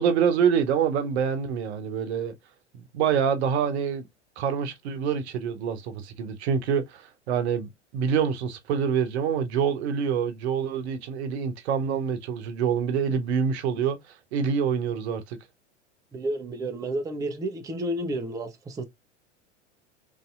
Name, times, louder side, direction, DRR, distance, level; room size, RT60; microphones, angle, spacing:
voice 1, 0.0-2.3 2.9-4.0 4.4-14.0 14.3-15.4, right 7 dB, 60° right, 0.8 m, -26 dB
voice 2, 16.1-18.8, right 1 dB, 10° right, 0.5 m, -31 dB
3.2 x 2.7 x 2.4 m
figure-of-eight pair, 85°, 36 cm